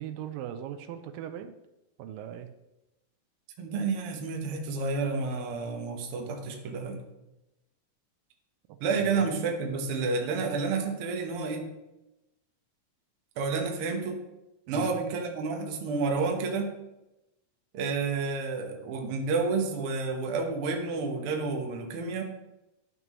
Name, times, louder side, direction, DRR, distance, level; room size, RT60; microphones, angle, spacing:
voice 1, 0.0-1.6 2.0-2.5 9.0-9.3 14.7-14.9, right 10 dB, 85° right, 9 dB, 2.3 m, -39 dB
voice 2, 3.6-7.0 8.8-11.7 13.4-14.2 14.7-16.7 17.7-22.2, right 4 dB, 60° right, 2 dB, 1.5 m, -30 dB
12.5 x 6.1 x 3.1 m, 0.95 s
omnidirectional pair, 3.9 m